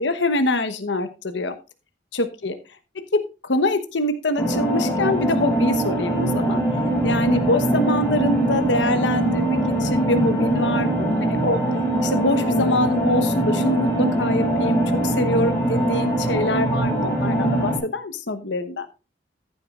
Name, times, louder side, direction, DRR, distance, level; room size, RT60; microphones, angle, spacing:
voice 1, 0.0-1.5 2.1-2.5 2.9-6.6 7.0-11.6 12.0-18.9, left 2 dB, 80° left, 9 dB, 1.1 m, -24 dB
sound 1, 4.4-17.8, right 1 dB, 15° left, 5.1 m, -22 dB
14.5 x 8.4 x 2.5 m, 0.30 s
head